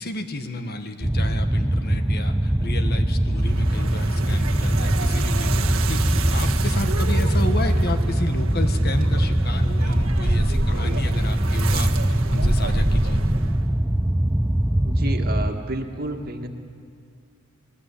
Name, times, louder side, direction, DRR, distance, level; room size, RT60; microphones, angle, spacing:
voice 1, 0.0-6.0 6.3-11.9 12.3-13.2, left 2 dB, 50° left, 7 dB, 1.6 m, -32 dB
sound 1, 1.0-15.5, right 1 dB, 10° right, 0.6 m, -22 dB
sound 2, 3.4-13.8, right 2 dB, 85° right, 1.6 m, -30 dB
voice 2, 14.8-16.5, right 1 dB, 45° right, 4 dB, 2.0 m, -30 dB
27.0 x 20.0 x 8.5 m, 2.3 s
head